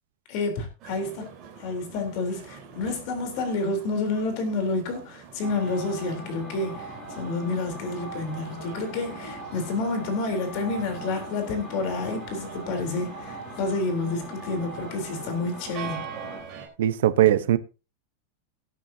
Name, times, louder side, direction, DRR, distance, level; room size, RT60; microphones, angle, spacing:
voice 1, 0.3-1.3 1.6-16.0, left 3 dB, 40° left, 3.6 m, -29 dB
sound 1, 0.8-16.7, right 7 dB, 30° right, 4.1 m, -44 dB
sound 2, 5.4-16.4, right 1 dB, 10° left, 5.4 m, -40 dB
voice 2, 16.8-17.6, right 12 dB, 80° right, 0.9 m, -20 dB
18.5 x 9.1 x 2.8 m
supercardioid pair, 170°, 0 cm